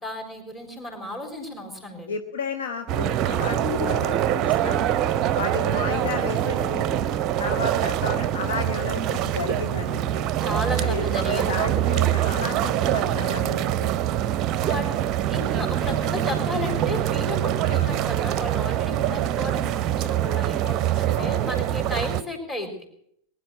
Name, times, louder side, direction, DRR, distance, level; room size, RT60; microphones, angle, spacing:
voice 1, 0.0-2.1 10.4-11.5 14.6-15.0 15.3-22.9, left 1 dB, 15° left, 4 dB, 4.1 m, -33 dB
voice 2, 2.1-5.0 5.4-6.9 7.4-10.2 10.8-13.9 17.7-17.9 21.2-21.4, left 5 dB, 60° left, 7 dB, 1.1 m, -33 dB
sound 1, 2.9-22.2, right 11 dB, 35° right, 0.7 m, -24 dB
20.5 x 10.5 x 6.4 m, 0.70 s
figure-of-eight pair, 90°, 0 cm